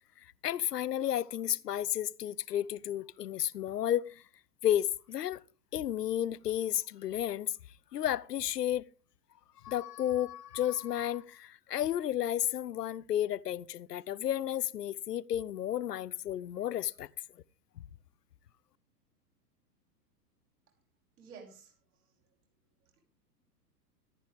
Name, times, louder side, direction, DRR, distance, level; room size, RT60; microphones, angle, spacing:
voice 1, 0.2-4.2 4.6-5.4 5.7-7.6 7.9-8.9 9.6-17.1, left 11 dB, 75° left, 0.6 m, -32 dB
voice 2, 21.2-22.1 22.8-23.0, right 5 dB, 60° right, 6.1 m, -53 dB
13.5 x 12.5 x 3.5 m
figure-of-eight pair, 100°, 49 cm